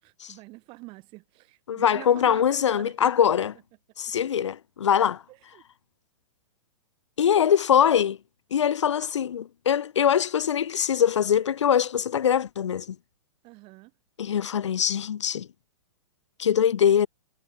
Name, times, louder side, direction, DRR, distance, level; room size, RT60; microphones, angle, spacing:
voice 1, 0.0-3.3 4.1-4.2 5.3-5.6 13.4-13.9, right 23 dB, 35° right, 5.9 m, -45 dB
voice 2, 1.7-3.5 4.0-5.2 7.2-8.2 8.5-13.0 14.2-15.5 16.4-17.1, left 8 dB, 85° left, 0.5 m, -23 dB
hypercardioid pair, 125°, 15 cm